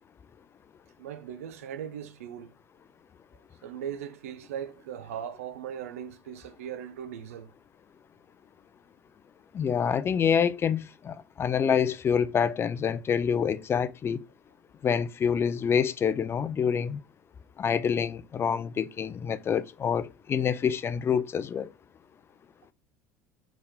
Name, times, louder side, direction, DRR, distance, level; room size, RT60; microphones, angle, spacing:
voice 1, 1.0-2.5 3.6-7.5, right 9 dB, 75° right, 0.5 m, -39 dB
voice 2, 9.5-14.2 14.8-17.0 17.6-21.7, left 7 dB, 30° left, 0.4 m, -27 dB
4.2 x 3.5 x 3.5 m
hypercardioid pair, 70°, 8 cm